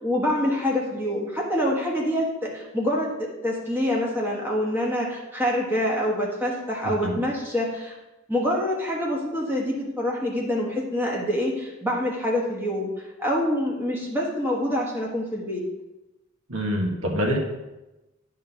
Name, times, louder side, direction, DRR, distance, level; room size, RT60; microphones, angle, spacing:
voice 1, 0.0-7.9 8.3-12.9 13.2-15.6, left 1 dB, 10° right, -3 dB, 1.4 m, -26 dB
voice 2, 16.5-17.4, equal, 85° right, 1 dB, 1.4 m, -25 dB
10.5 x 3.8 x 5.7 m, 1.0 s
head